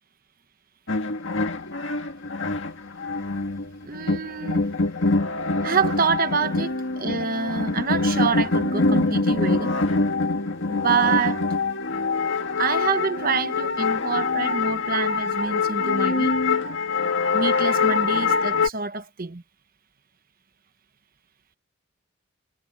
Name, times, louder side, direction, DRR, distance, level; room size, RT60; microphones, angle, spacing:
sound 1, 0.9-18.7, left 3 dB, 60° left, 1.9 m, -24 dB
voice 1, 3.8-4.7 5.6-9.8 10.7-11.5 12.6-16.4 17.3-19.4, right 5 dB, 45° right, 1.0 m, -26 dB
head